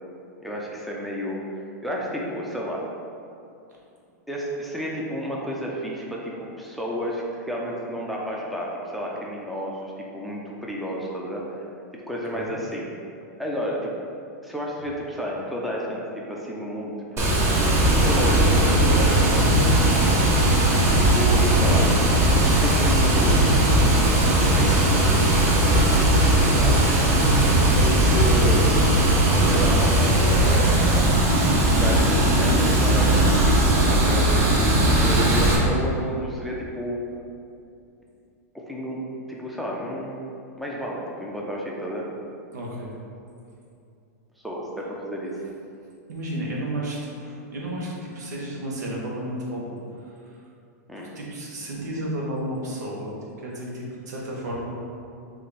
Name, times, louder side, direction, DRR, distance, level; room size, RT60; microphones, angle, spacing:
voice 1, 0.4-1.4 1.8-2.8 4.3-11.7 12.1-12.9 13.4-13.9 14.4-17.3 18.0-19.4 21.0-21.9 22.4-23.6 23.9-26.8 27.7-28.7 29.3-30.6 31.8-33.6 33.9-34.2 34.9-37.0 38.5-39.0 39.3-40.3 40.6-42.1 44.4-45.3 50.9-51.1, equal, ahead, -3 dB, 0.5 m, -31 dB
Water, 17.2-35.6, right 1 dB, 30° right, 0.8 m, -18 dB
voice 2, 31.1-31.5 42.5-42.9 46.1-50.4 51.0-54.7, right 1 dB, 85° right, -4 dB, 1.2 m, -32 dB
5.5 x 2.6 x 3.2 m, 2.6 s
supercardioid pair, 140°, 9 cm